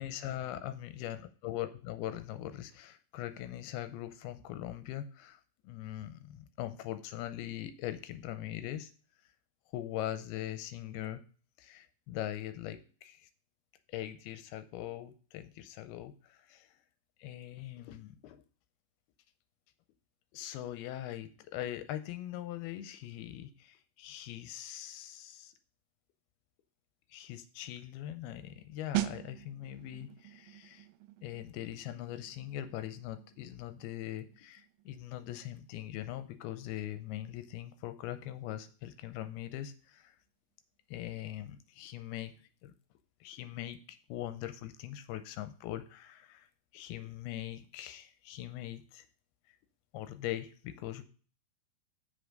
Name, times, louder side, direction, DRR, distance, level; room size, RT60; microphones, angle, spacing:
voice 1, 0.0-8.9 9.7-11.2 11.6-13.3 13.9-16.7 17.2-18.4 20.3-25.5 27.1-30.9 31.2-40.1 40.9-42.3 42.6-42.7 43.2-46.5 46.7-49.1 49.9-51.0, left 12 dB, 85° left, 10 dB, 2.6 m, -41 dB
sound 1, 28.9-39.4 39.7-40.0, right 15 dB, 85° right, 1.9 m, -43 dB
7.7 x 6.9 x 5.2 m, 0.39 s
omnidirectional pair, 4.6 m